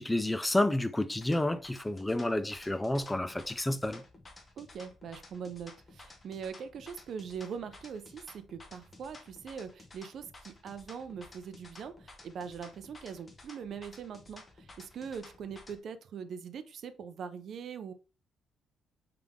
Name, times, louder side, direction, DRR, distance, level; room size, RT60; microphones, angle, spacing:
voice 1, 0.0-4.0, left 1 dB, 10° left, 0.3 m, -30 dB
sound 1, 1.0-15.8, left 2 dB, 30° left, 0.9 m, -53 dB
voice 2, 4.6-17.9, right 7 dB, 65° right, 0.5 m, -42 dB
3.5 x 3.3 x 3.6 m
cardioid pair, 90°, 0 cm